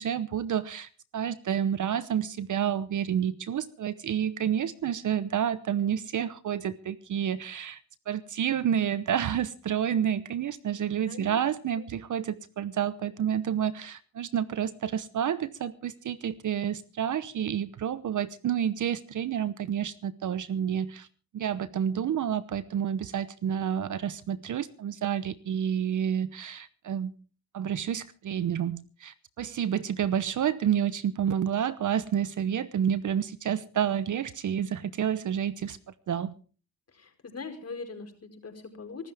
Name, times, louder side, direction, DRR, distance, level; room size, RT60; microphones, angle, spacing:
voice 1, 0.0-7.8 8.1-21.1 21.3-27.1 27.5-35.8 36.1-36.3, right 9 dB, 40° right, 0.9 m, -29 dB
voice 2, 11.1-11.4 36.9-39.1, left 4 dB, 35° left, 4.9 m, -41 dB
24.5 x 13.0 x 3.5 m
supercardioid pair, 90°, 45 cm